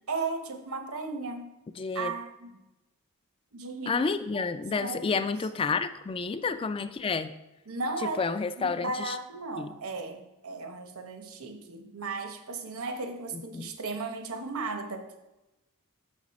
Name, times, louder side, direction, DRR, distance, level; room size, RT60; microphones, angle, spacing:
voice 1, 0.1-1.5 1.9-2.6 3.5-4.0 4.3-4.5 4.7-5.3 7.7-8.2 8.6-15.2, right 3 dB, 80° right, 6 dB, 0.9 m, -36 dB
voice 2, 1.8-2.1 3.9-7.3 8.0-9.2 9.6-9.7 13.3-13.7, left 4 dB, 25° left, 12 dB, 0.3 m, -30 dB
6.8 x 6.2 x 4.1 m, 0.98 s
head